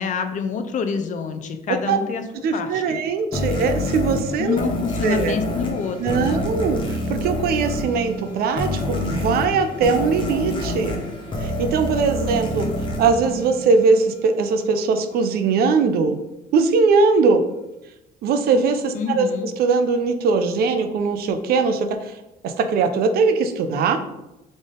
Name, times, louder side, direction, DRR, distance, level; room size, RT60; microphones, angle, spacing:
voice 1, 0.0-2.2 2.5-3.0 4.4-6.4 18.9-19.5, left 5 dB, 50° left, 8 dB, 0.5 m, -27 dB
voice 2, 2.4-4.6 5.0-5.3 6.0-11.0 11.4-12.7 13.0-16.2 16.5-17.4 18.2-22.1 22.4-24.0, right 4 dB, 65° right, 8 dB, 0.5 m, -20 dB
sound 1, 3.3-14.1, left 1 dB, 30° left, 1.1 m, -27 dB
3.9 x 3.6 x 3.7 m, 0.94 s
cardioid pair, 110°, 17 cm